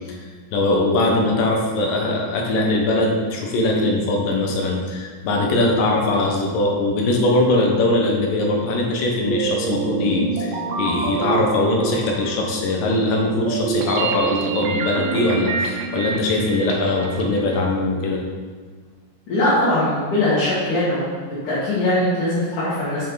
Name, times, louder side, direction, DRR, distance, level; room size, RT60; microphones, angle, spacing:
voice 1, 0.5-18.2, left 2 dB, 85° left, 0 dB, 3.0 m, -21 dB
sound 1, 9.2-17.6, right 5 dB, 85° right, 2.8 m, -27 dB
voice 2, 19.3-21.1 21.4-23.1, left 1 dB, 65° left, -10 dB, 3.8 m, -21 dB
9.6 x 7.5 x 4.1 m, 1.5 s
omnidirectional pair, 3.9 m